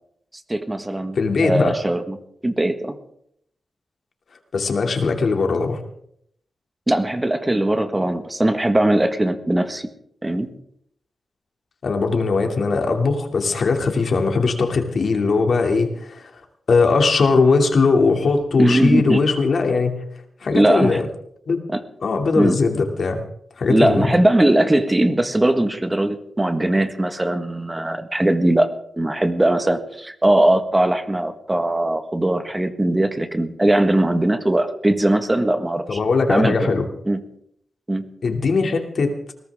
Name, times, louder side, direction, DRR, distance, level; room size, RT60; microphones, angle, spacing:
voice 1, 0.5-2.2 2.4-3.0 6.9-9.9 10.2-10.5 18.6-19.2 20.5-21.0 21.7-21.8 22.3-22.6 23.7-28.7 29.0-36.0 36.3-36.7 37.1-37.2 37.9-38.0, right 1 dB, 15° right, 8 dB, 1.6 m, -20 dB
voice 2, 1.1-1.7 4.5-5.8 11.8-16.3 16.7-20.0 20.4-21.1 21.5-21.6 22.0-23.2 23.6-24.1 35.9-36.9 38.2-39.1, left 4 dB, 65° left, 4 dB, 2.8 m, -19 dB
21.0 x 18.5 x 3.7 m, 0.70 s
cardioid pair, 90°, 0 cm